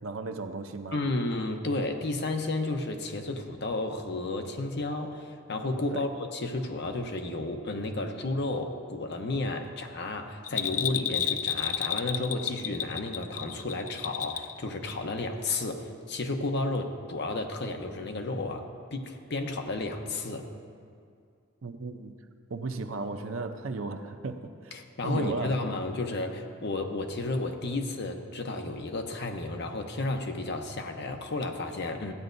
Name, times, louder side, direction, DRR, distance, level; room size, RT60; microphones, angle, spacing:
voice 1, 0.0-1.0 5.9-6.0 21.6-22.2 22.5-24.8 25.0-25.6, right 3 dB, 75° right, 7 dB, 0.6 m, -35 dB
voice 2, 0.9-20.5 24.7-32.1, left 2 dB, 55° left, 4 dB, 0.8 m, -32 dB
Bell, 10.4-14.6 14.9-15.0, left 10 dB, 35° left, 0.3 m, -31 dB
15.5 x 9.1 x 2.6 m, 2.3 s
head